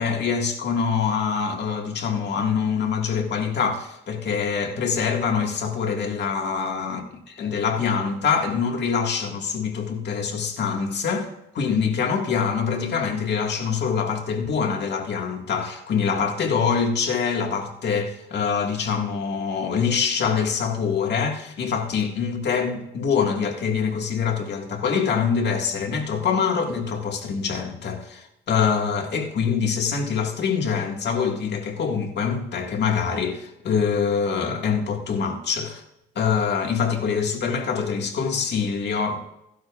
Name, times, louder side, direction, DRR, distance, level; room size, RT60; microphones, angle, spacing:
voice 1, 0.0-7.0 7.4-11.3 11.5-35.8 36.2-39.2, left 6 dB, 60° left, 1.9 m, -24 dB
16.5 x 12.0 x 2.4 m
cardioid pair, 90°, 20 cm